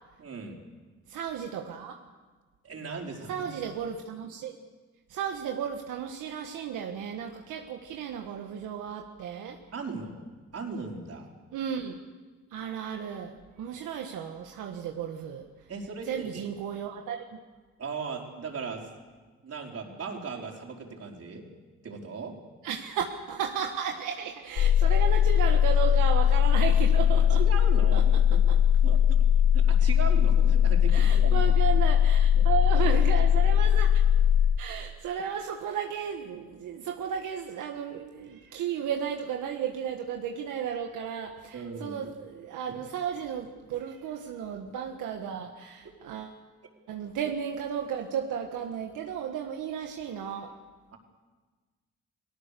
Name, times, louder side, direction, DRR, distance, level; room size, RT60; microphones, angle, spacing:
voice 1, 0.2-0.6 2.6-3.5 9.7-10.2 10.5-11.3 15.7-16.4 17.8-18.9 19.4-21.4 21.8-22.3 27.4-28.4 28.8-29.0 29.5-31.5 32.3-32.5 41.5-42.0 50.9-51.0, right 4 dB, 55° right, 1 dB, 4.8 m, -38 dB
voice 2, 1.1-2.0 3.3-4.6 5.1-9.6 11.5-12.0 12.5-15.7 16.0-17.4 22.6-27.4 27.9-28.6 30.9-34.0 34.6-46.4 46.9-50.6, right 8 dB, 85° right, 3 dB, 1.6 m, -34 dB
sound 1, 24.6-34.6, left 9 dB, 60° left, 0.8 m, -21 dB
29.5 x 18.5 x 6.9 m, 1.4 s
cardioid pair, 70°, 30 cm